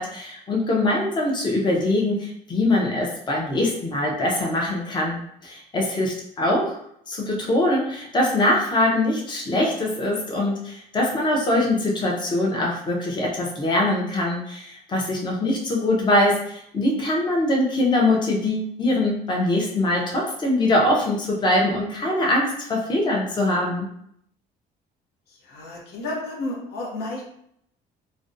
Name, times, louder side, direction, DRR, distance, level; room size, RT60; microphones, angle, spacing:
voice 1, 0.0-6.8 7.1-23.9, left 1 dB, 25° left, -2 dB, 0.6 m, -23 dB
voice 2, 25.3-27.2, left 2 dB, 75° left, -2 dB, 0.7 m, -32 dB
2.5 x 2.1 x 2.6 m, 0.71 s
cardioid pair, 110°, 17 cm